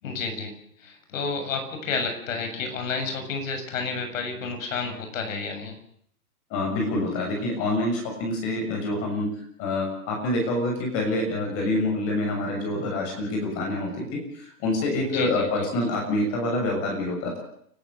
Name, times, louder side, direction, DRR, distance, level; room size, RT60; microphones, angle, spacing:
voice 1, 0.0-5.8 15.1-15.5, left 4 dB, 60° left, 6 dB, 7.5 m, -31 dB
voice 2, 6.5-9.3 9.6-17.4, left 2 dB, 30° left, 1 dB, 7.0 m, -26 dB
29.0 x 13.5 x 8.0 m, 0.68 s
hypercardioid pair, 145°, 45 cm